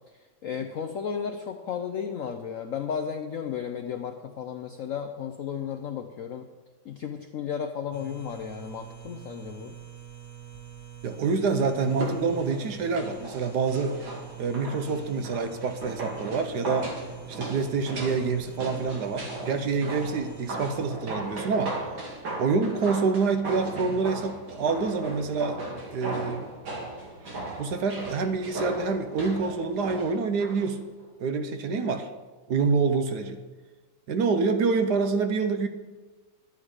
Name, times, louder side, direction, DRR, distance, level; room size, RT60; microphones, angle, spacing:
voice 1, 0.1-6.5 6.8-9.8 25.0-25.1, left 7 dB, 75° left, 6 dB, 0.7 m, -34 dB
sound 1, 7.9-20.9, right 10 dB, 20° right, 0.4 m, -45 dB
voice 2, 11.0-14.0 14.4-16.9 17.3-21.8 22.4-25.6 25.9-26.5 27.6-30.8 31.2-32.1 32.5-33.4 34.1-35.7, right 4 dB, 65° right, 8 dB, 1.3 m, -27 dB
sound 2, 11.9-30.7 31.0-31.1, right 1 dB, 85° right, 3.1 m, -37 dB
11.5 x 8.8 x 4.9 m, 1.3 s
omnidirectional pair, 2.1 m